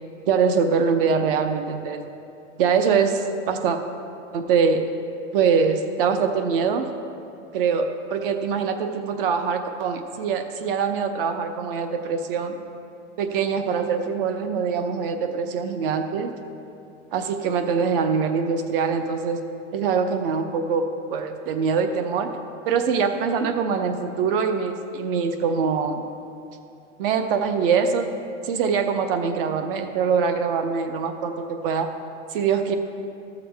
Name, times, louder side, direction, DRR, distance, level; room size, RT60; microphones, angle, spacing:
voice 1, 0.3-2.0 2.6-3.8 4.3-4.8 5.3-6.9 7.5-12.5 13.2-16.3 17.1-19.4 19.7-20.8 21.1-22.3 22.7-26.0 27.0-28.1 28.4-31.9 32.3-32.8, right 6 dB, 50° right, 7 dB, 0.7 m, -23 dB
14.0 x 7.0 x 3.4 m, 2.6 s
supercardioid pair, 170°, 37 cm